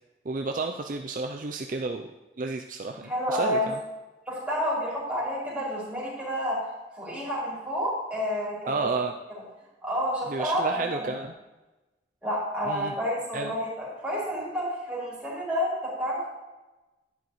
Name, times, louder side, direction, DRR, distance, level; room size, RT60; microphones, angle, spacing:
voice 1, 0.3-2.1 2.4-3.8 8.7-9.1 10.3-11.3 12.7-12.9 13.3-13.5, right 3 dB, 45° right, 4 dB, 0.4 m, -31 dB
voice 2, 2.9-3.7 4.3-6.6 7.0-8.9 9.8-11.2 12.2-15.7 16.0-16.3, equal, 5° right, -8 dB, 3.8 m, -29 dB
11.0 x 10.5 x 3.1 m, 1.1 s
head